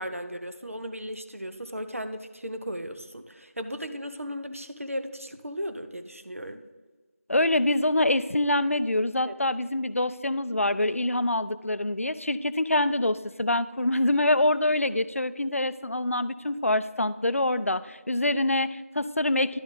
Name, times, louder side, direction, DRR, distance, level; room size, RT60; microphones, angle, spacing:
voice 1, 0.0-6.6 9.2-9.3, equal, 65° right, 8 dB, 0.7 m, -36 dB
voice 2, 7.3-19.6, left 1 dB, 65° left, 15 dB, 0.4 m, -25 dB
11.0 x 6.4 x 3.8 m, 1.3 s
figure-of-eight pair, 180°, 8 cm